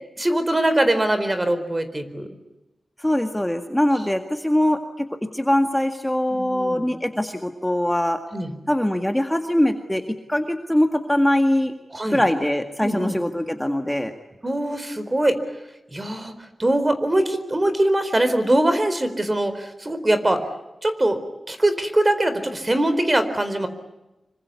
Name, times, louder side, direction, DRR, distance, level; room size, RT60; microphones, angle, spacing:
voice 1, 0.2-2.3 6.3-6.9 8.3-8.5 11.9-12.2 12.8-13.1 14.4-15.4 15.9-16.3 16.6-20.4 20.8-21.2 21.5-23.7, right 1 dB, 25° right, 10 dB, 4.3 m, -22 dB
voice 2, 3.0-5.1 5.3-8.2 8.7-10.0 10.3-11.7 12.1-14.1, left 1 dB, 10° left, 6 dB, 1.9 m, -22 dB
27.0 x 25.0 x 8.4 m, 1.0 s
wide cardioid pair, 95°, 0 cm